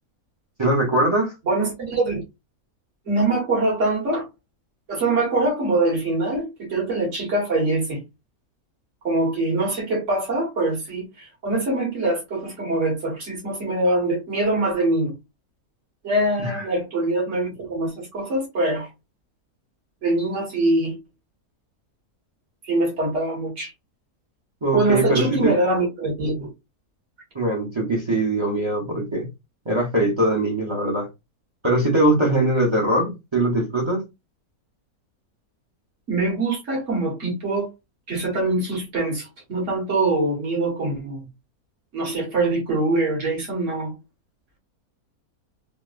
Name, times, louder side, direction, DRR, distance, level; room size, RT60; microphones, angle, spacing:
voice 1, 0.6-1.3 16.4-16.7 24.6-25.5 27.3-29.3 29.7-31.1 31.6-34.0, right 1 dB, 30° right, 0.6 m, -21 dB
voice 2, 1.4-2.2 3.1-4.3 4.9-8.0 9.0-15.1 16.0-18.9 20.0-21.0 22.6-23.7 24.7-26.5 36.1-37.7 38.1-41.3 41.9-43.9, right 2 dB, 50° right, 1.8 m, -23 dB
3.7 x 2.1 x 2.5 m
omnidirectional pair, 1.6 m